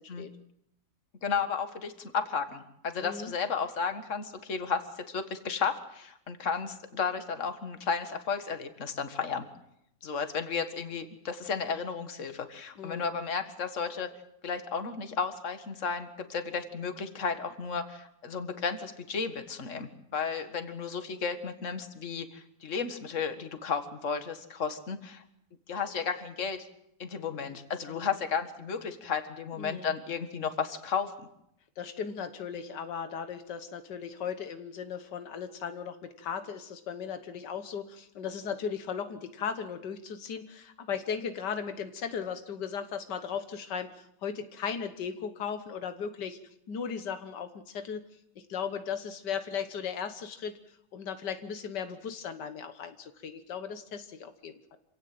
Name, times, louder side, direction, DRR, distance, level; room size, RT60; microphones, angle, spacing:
voice 1, 1.2-9.4 10.0-14.1 14.4-25.2 25.7-26.6 27.0-31.1, left 6 dB, 45° left, 8 dB, 2.0 m, -33 dB
voice 2, 3.0-3.3 12.8-13.1 27.5-27.6 29.6-29.9 31.8-46.4 46.7-48.0 48.4-54.8, left 7 dB, 85° left, 9 dB, 1.8 m, -37 dB
26.5 x 17.0 x 7.7 m, 0.76 s
omnidirectional pair, 1.8 m